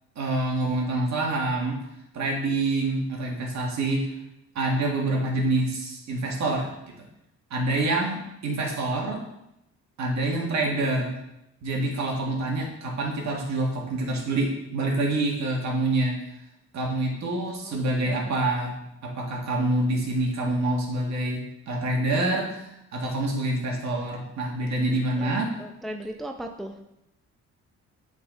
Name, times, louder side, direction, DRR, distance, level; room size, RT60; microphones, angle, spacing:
voice 1, 0.2-1.8 2.1-4.1 4.6-7.1 7.5-9.2 10.0-11.2 11.6-16.2 16.7-18.7 19.0-25.5, right 2 dB, 65° right, 0 dB, 1.8 m, -26 dB
voice 2, 17.5-17.8 18.0-18.4 25.2-26.8, right 1 dB, ahead, 4 dB, 0.6 m, -38 dB
8.5 x 4.0 x 3.9 m, 0.84 s
cardioid pair, 90°, 30 cm